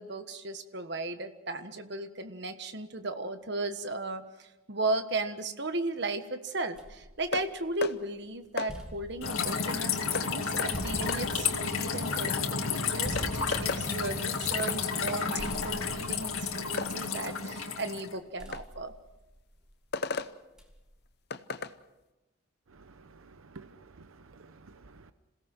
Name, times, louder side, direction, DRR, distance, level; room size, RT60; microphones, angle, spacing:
voice 1, 0.0-18.9, right 2 dB, 55° right, 9 dB, 1.4 m, -36 dB
sound 1, 6.8-8.0 8.4-15.1 15.4-17.6 18.4-19.9 20.6-21.0, equal, 5° right, 2.0 m, -46 dB
sound 2, 7.3-7.5 7.8-8.0 8.6-8.7 10.1-10.3 10.6-10.7 11.1-11.2 12.6-12.7 13.2-13.8 14.6-14.8 15.1-15.2 16.8-16.9 18.5-18.6 19.9-20.3 21.3-21.7, left 4 dB, 50° left, 0.8 m, -34 dB
sound 3, 9.2-18.1, left 5 dB, 90° left, 2.2 m, -31 dB
voice 2, 22.7-25.1, right 3 dB, 85° right, 11 dB, 0.8 m, -52 dB
27.0 x 17.0 x 6.1 m, 1.0 s
head